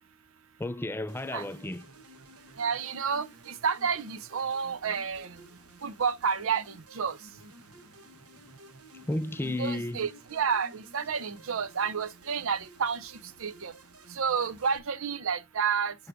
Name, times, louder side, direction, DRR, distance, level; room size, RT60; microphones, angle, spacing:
voice 1, 0.6-1.8 9.1-10.0, left 1 dB, 10° left, 0.3 m, -32 dB
sound 1, 1.1-14.8, right 2 dB, 85° right, 1.3 m, -53 dB
voice 2, 2.6-5.4 5.8-7.2 9.4-13.7 14.1-16.0, right 6 dB, 65° right, 0.6 m, -30 dB
12.0 x 4.8 x 2.6 m
head